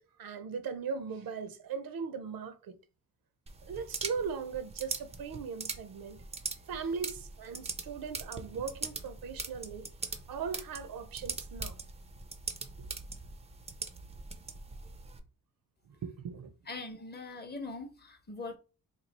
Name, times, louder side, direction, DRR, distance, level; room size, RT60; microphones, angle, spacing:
voice 1, 0.0-2.8 3.7-6.2 6.7-9.9 10.3-11.8 15.9-16.5, right 6 dB, 70° right, 0.6 m, -39 dB
sound 1, 3.5-15.2, right 4 dB, 20° right, 0.3 m, -42 dB
voice 2, 16.7-18.6, left 3 dB, 30° left, 0.6 m, -41 dB
3.0 x 2.3 x 4.0 m
wide cardioid pair, 130°, 36 cm